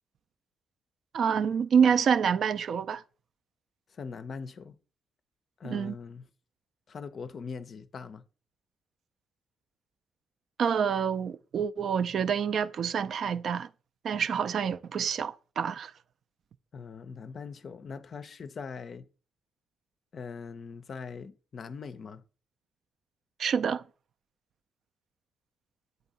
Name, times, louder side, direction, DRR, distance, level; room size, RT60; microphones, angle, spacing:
voice 1, 1.1-3.0 5.6-5.9 10.6-13.7 14.0-15.9 23.4-23.8, right 7 dB, 60° right, 0.3 m, -27 dB
voice 2, 3.9-4.8 5.6-6.2 6.9-8.2 16.7-19.1 20.1-22.2, left 5 dB, 50° left, 0.5 m, -41 dB
7.8 x 2.7 x 5.3 m
cardioid pair, 90°, 0 cm